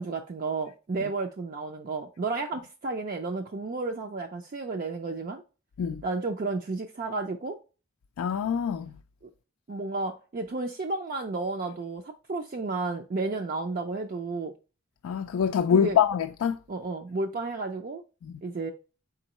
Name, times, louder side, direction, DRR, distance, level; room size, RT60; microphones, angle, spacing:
voice 1, 0.0-5.4 6.0-7.6 9.2-9.3 9.7-14.5 15.7-16.0 16.7-18.0 18.4-18.7, right 3 dB, 45° right, 0.4 m, -32 dB
voice 2, 8.2-8.9 15.0-16.6 18.2-18.3, left 8 dB, 85° left, 0.3 m, -25 dB
4.4 x 3.8 x 2.9 m
head